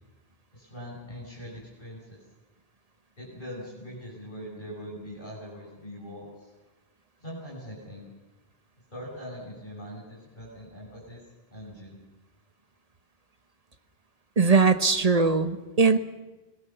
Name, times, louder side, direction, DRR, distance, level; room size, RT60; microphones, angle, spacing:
voice 1, 0.5-2.2 3.2-6.5 7.2-8.1 8.9-11.2 11.5-12.0, equal, 50° left, -4 dB, 6.1 m, -42 dB
voice 2, 14.4-16.0, right 4 dB, 40° right, 10 dB, 1.2 m, -20 dB
26.5 x 19.5 x 7.0 m, 1.1 s
omnidirectional pair, 1.0 m